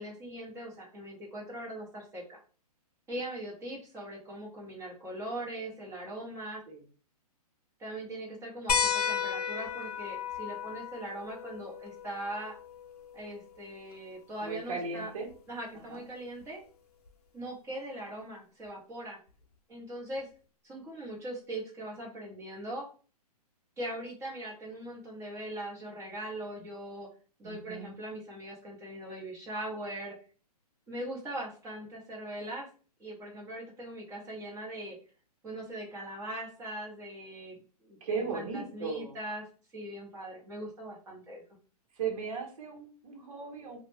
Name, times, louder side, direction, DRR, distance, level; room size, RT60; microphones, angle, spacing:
voice 1, 0.0-2.4 3.1-6.6 7.8-12.5 13.1-15.1 15.5-16.6 17.3-19.2 19.7-20.3 20.6-22.9 23.8-27.1 27.4-30.1 30.9-32.7 33.0-35.0 35.4-39.4 39.7-41.4, right 1 dB, 15° right, -4 dB, 0.9 m, -40 dB
sound 1, 8.7-13.8 15.3-15.4 17.1-17.2, left 7 dB, 75° left, 0.6 m, -34 dB
voice 2, 14.4-15.3 15.9-16.1 27.4-27.9 38.0-39.2 42.0-43.8, right 5 dB, 55° right, 2 dB, 0.9 m, -37 dB
2.3 x 2.1 x 3.2 m, 0.39 s
hypercardioid pair, 140°, 20 cm